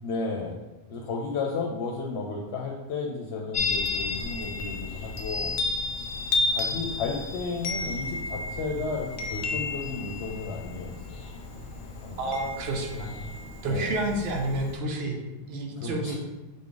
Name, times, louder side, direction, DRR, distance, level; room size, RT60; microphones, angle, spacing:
voice 1, 0.0-0.6 0.9-5.5 6.0-6.1 6.5-10.9 12.0-12.4 13.6-14.0 15.8-16.2, left 4 dB, 80° left, 0 dB, 0.8 m, -33 dB
Chime, 3.5-14.8, left 3 dB, 55° left, 0.7 m, -32 dB
voice 2, 12.2-13.3 13.6-16.2, right 1 dB, 70° right, 1 dB, 1.0 m, -30 dB
3.9 x 3.6 x 3.8 m, 1.1 s
omnidirectional pair, 1.1 m